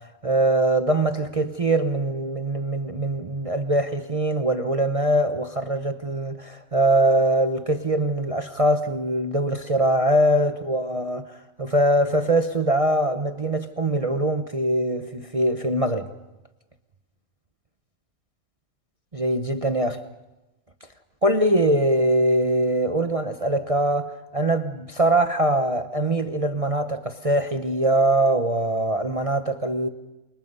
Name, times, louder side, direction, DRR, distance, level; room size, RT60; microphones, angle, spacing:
voice 1, 0.0-16.1 19.1-20.0 21.2-29.9, right 1 dB, 30° right, 0.9 m, -22 dB
29.0 x 24.5 x 5.5 m
omnidirectional pair, 1.4 m